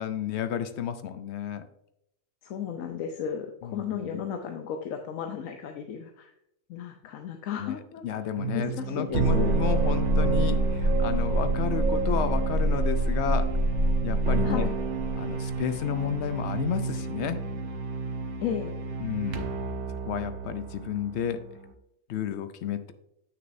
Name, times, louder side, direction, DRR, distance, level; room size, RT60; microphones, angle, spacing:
voice 1, 0.0-1.6 3.6-4.2 7.6-7.8 8.0-13.6 14.0-14.7 15.1-17.4 19.0-19.5 20.0-21.4 22.1-22.9, left 8 dB, 65° left, 11 dB, 0.8 m, -32 dB
voice 2, 2.4-6.3 6.7-8.0 8.5-9.5 14.4-14.7 18.4-18.8, left 8 dB, 85° left, 5 dB, 1.1 m, -34 dB
sound 1, 8.4-21.7, right 2 dB, 65° right, 1.1 m, -27 dB
8.7 x 6.2 x 2.6 m, 0.78 s
omnidirectional pair, 1.4 m